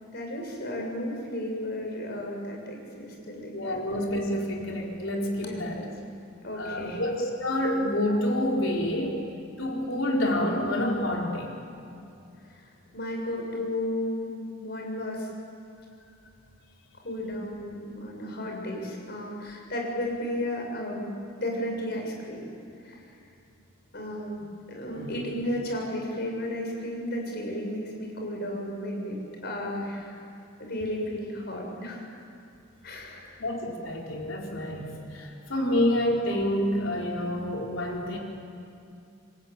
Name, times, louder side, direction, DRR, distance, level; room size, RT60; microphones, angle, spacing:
voice 1, 0.1-3.8 5.3-5.9 6.4-7.0 12.4-15.3 17.0-22.4 22.8-23.0 23.9-24.4 24.7-30.2 30.6-32.0 32.8-33.3 35.6-35.7, left 1 dB, 50° left, 0 dB, 6.6 m, -34 dB
voice 2, 3.5-5.8 6.6-9.2 9.6-11.5 24.9-25.2 33.4-38.2, left 1 dB, 70° left, -1 dB, 4.4 m, -28 dB
28.5 x 21.5 x 9.0 m, 2.6 s
head